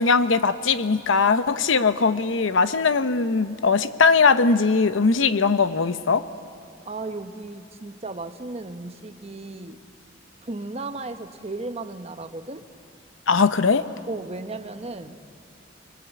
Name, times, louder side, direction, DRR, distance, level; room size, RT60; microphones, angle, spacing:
voice 1, 0.0-6.2 13.3-13.8, left 4 dB, 80° left, 12 dB, 0.8 m, -20 dB
voice 2, 6.9-9.8 10.4-12.7 14.1-15.2, right 2 dB, 35° right, 8 dB, 1.0 m, -35 dB
26.0 x 21.0 x 8.2 m, 2.4 s
head